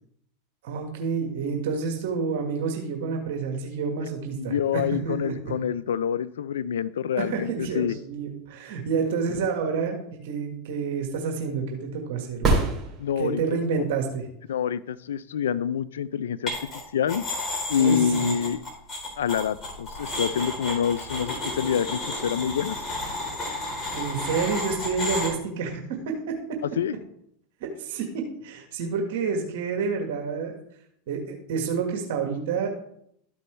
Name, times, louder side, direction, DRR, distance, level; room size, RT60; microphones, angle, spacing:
voice 1, 0.6-5.3 7.2-10.0 10.2-12.6 13.2-14.2 17.8-18.3 23.9-26.6 27.6-30.6 31.1-32.7, right 5 dB, 70° right, 3 dB, 1.6 m, -29 dB
voice 2, 4.4-8.0 8.9-9.1 13.0-13.4 14.5-17.2 17.7-18.6 19.2-22.8 26.8-26.9, left 8 dB, 90° left, 18 dB, 0.4 m, -27 dB
sound 1, 12.3-13.6 17.4-17.5, right 2 dB, 25° right, 3.4 m, -24 dB
sound 2, 16.5-16.8 17.1-25.3, left 2 dB, 25° left, 3.6 m, -32 dB
13.0 x 5.3 x 3.3 m, 0.71 s
hypercardioid pair, 110°, 0 cm